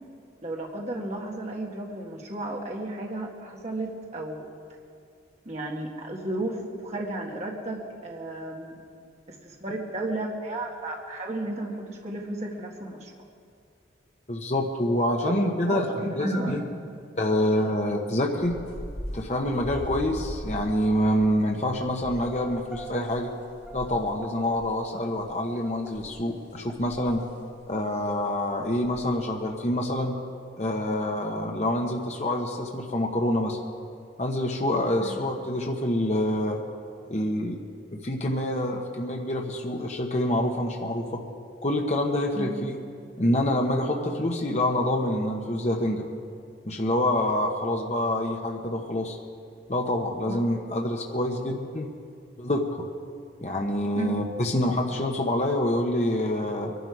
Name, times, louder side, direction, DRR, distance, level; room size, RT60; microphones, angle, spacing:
voice 1, 0.4-4.5 5.5-8.8 9.3-13.1 15.2-15.3 15.7-16.9 35.0-35.2 42.4-42.5 50.3-50.4 54.0-54.2, right 1 dB, 35° right, -1 dB, 1.8 m, -33 dB
voice 2, 14.3-15.9 16.1-16.6 17.2-18.6 19.1-23.3 23.7-27.3 27.7-30.2 30.6-33.6 34.2-36.6 37.1-37.6 37.9-41.2 41.6-42.8 43.2-46.1 46.6-49.2 49.7-51.9 52.4-52.8 53.4-56.7, left 1 dB, 35° left, 1 dB, 1.1 m, -26 dB
sound 1, 18.4-24.7 25.1-25.3 25.9-27.3 27.6-27.7 28.1-28.2 28.7-29.2, equal, 65° left, 3.9 m, -40 dB
sound 2, 20.6-21.0 21.6-21.8 22.2-25.1 25.6-25.9 26.5-26.8 27.1-27.3, right 1 dB, 5° right, 1.9 m, -47 dB
23.0 x 12.0 x 4.8 m, 2.3 s
head